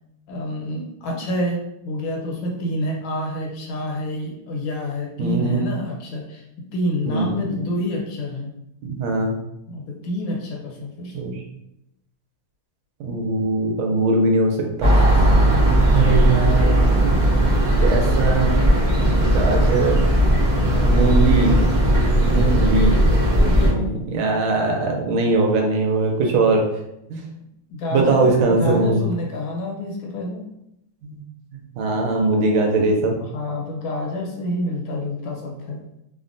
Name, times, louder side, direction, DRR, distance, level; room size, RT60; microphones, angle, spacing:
voice 1, 0.3-8.5 9.7-11.1 15.3-15.8 20.9-21.4 22.3-22.7 23.3-23.9 27.7-30.4 33.3-35.8, left 1 dB, 75° left, -1 dB, 1.5 m, -28 dB
voice 2, 5.2-5.7 7.1-7.7 8.8-9.4 11.1-11.4 13.0-15.3 15.9-17.4 17.8-18.6 18.9-20.0 20.8-21.7 22.2-23.2 23.6-26.7 27.1-27.2 27.9-29.0 31.0-31.2 31.8-33.1, right 3 dB, 80° right, 1 dB, 1.3 m, -21 dB
sound 1, 14.8-23.7, equal, 20° right, 0.5 m, -17 dB
3.4 x 2.1 x 2.5 m, 0.82 s
omnidirectional pair, 2.3 m